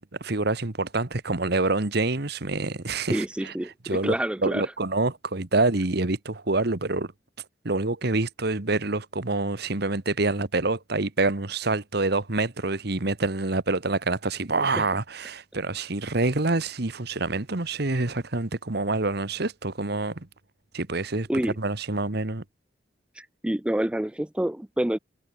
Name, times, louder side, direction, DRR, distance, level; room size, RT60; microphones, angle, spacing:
voice 1, 0.2-3.5 3.8-4.1 4.4-7.1 7.6-20.3 20.7-21.3 21.6-22.4, right 3 dB, 60° right, 1.5 m, -26 dB
voice 2, 3.1-4.7 14.8-14.9 21.3-21.6 23.2-25.0, right 1 dB, 5° right, 0.4 m, -27 dB
head